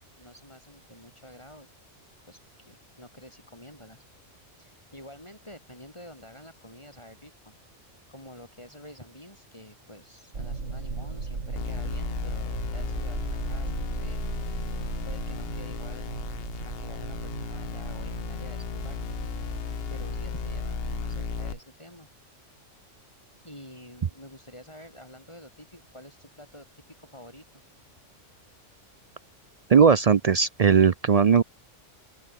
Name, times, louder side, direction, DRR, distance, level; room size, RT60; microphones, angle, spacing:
voice 1, 0.2-1.7 2.3-4.0 4.6-7.5 8.1-14.2 15.0-16.2 16.6-19.0 19.9-22.1 23.4-27.6, left 1 dB, 25° left, 7.1 m, -48 dB
sound 1, 10.3-21.6, right 3 dB, 80° right, 3.2 m, -36 dB
sound 2, 11.6-21.5, left 9 dB, 55° left, 0.9 m, -36 dB
voice 2, 29.7-31.4, right 6 dB, 50° right, 0.4 m, -18 dB
open air
omnidirectional pair, 1.3 m